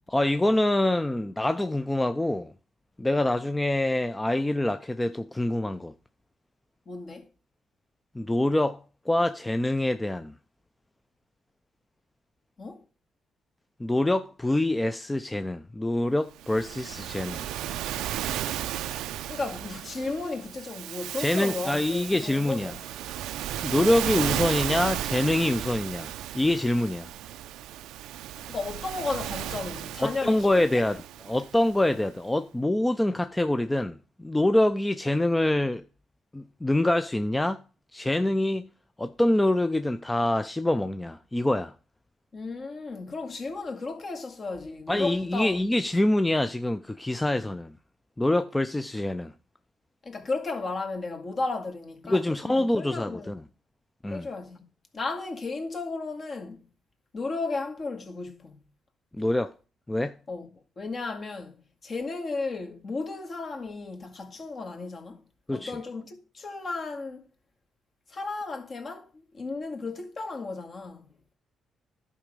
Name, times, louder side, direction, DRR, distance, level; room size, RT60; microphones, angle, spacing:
voice 1, 0.1-2.5 3.0-5.9 8.1-10.3 13.8-17.4 21.2-22.8 23.6-27.1 30.0-35.8 36.3-37.6 37.9-38.6 39.0-41.7 44.9-47.7 48.2-49.3 52.1-53.4 54.0-54.3 59.2-59.5 59.9-60.2 65.5-65.8, left 1 dB, 10° left, 0.5 m, -25 dB
voice 2, 6.9-7.3 12.6-12.8 19.3-22.9 28.5-30.7 42.3-45.6 50.0-53.3 54.1-54.7 54.9-56.6 57.1-58.6 60.3-60.5 60.8-65.2 65.5-67.3 68.1-71.1, left 3 dB, 45° left, 2.0 m, -34 dB
Waves surf, 16.4-31.9, right 12 dB, 90° right, 0.5 m, -34 dB
11.0 x 5.1 x 5.2 m
cardioid pair, 90°, 0 cm